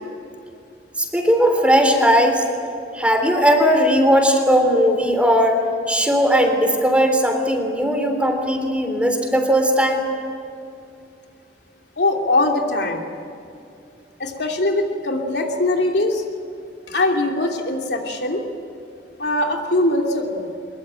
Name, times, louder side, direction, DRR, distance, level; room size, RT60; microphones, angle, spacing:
voice 1, 1.0-2.4 2.9-10.1, equal, 5° right, 4 dB, 3.4 m, -18 dB
voice 2, 12.0-13.1 14.2-16.2 16.9-18.4 19.2-20.5, left 2 dB, 75° left, 1 dB, 3.0 m, -21 dB
23.5 x 22.5 x 9.0 m, 2.6 s
head